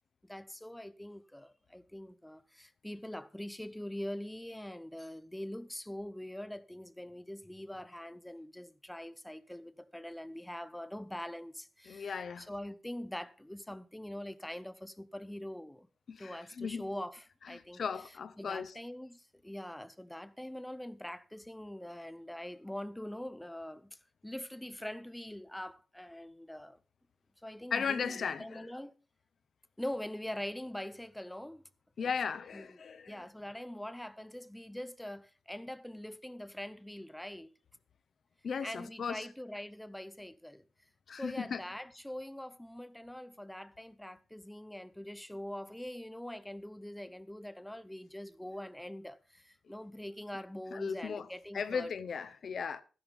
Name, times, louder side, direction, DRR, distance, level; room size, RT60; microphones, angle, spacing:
voice 1, 0.3-15.9 16.2-17.8 18.4-26.8 27.4-28.9 29.8-31.6 32.0-32.1 32.5-37.5 38.6-40.6 41.1-51.9, left 1 dB, 5° left, 0.6 m, -43 dB
voice 2, 11.9-12.5 16.1-16.8 17.5-18.7 27.7-28.7 32.0-33.2 38.4-39.3 41.1-41.6 50.7-51.3 51.5-52.8, left 6 dB, 50° left, 0.7 m, -36 dB
12.5 x 11.0 x 3.5 m
wide cardioid pair, 155°, 0 cm